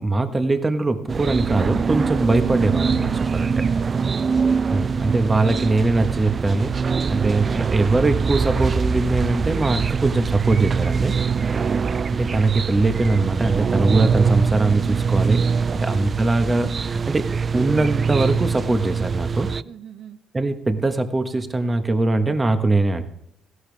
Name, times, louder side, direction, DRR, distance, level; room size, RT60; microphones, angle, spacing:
voice 1, 0.0-3.7 4.7-6.7 7.1-11.1 12.1-15.4 15.7-19.5 20.3-23.0, right 2 dB, 25° right, 7 dB, 1.4 m, -21 dB
sound 1, 1.1-19.6, right 5 dB, 40° right, 0.3 m, -23 dB
voice 2, 3.6-4.6 7.1-7.3 15.7-16.1 19.6-20.2, right 8 dB, 70° right, 8 dB, 0.8 m, -41 dB
16.0 x 11.5 x 3.5 m, 0.80 s
cardioid pair, 90°, 0 cm